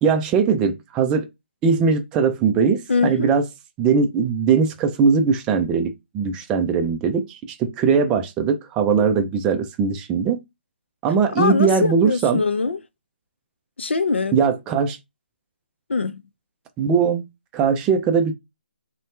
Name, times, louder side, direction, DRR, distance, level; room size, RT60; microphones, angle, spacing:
voice 1, 0.0-1.3 1.6-3.4 3.8-10.4 11.0-12.4 14.3-15.0 16.8-17.2 17.5-18.3, right 6 dB, 10° right, 0.3 m, -20 dB
voice 2, 2.9-3.4 11.4-12.8 13.8-14.4 15.9-16.2, left 4 dB, 80° left, 0.5 m, -22 dB
2.7 x 2.1 x 3.2 m
hypercardioid pair, 155°, 6 cm